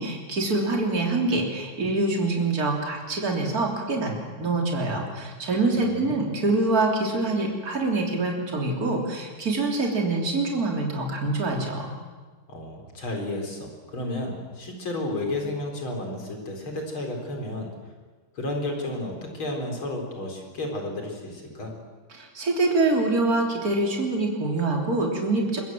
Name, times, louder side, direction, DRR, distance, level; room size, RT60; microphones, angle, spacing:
voice 1, 0.0-11.9 22.1-25.6, right 2 dB, 45° right, 1 dB, 3.8 m, -25 dB
voice 2, 5.7-6.3 12.5-17.7 18.3-21.7, left 1 dB, 75° left, 2 dB, 5.0 m, -32 dB
24.0 x 21.5 x 7.7 m, 1.4 s
omnidirectional pair, 2.3 m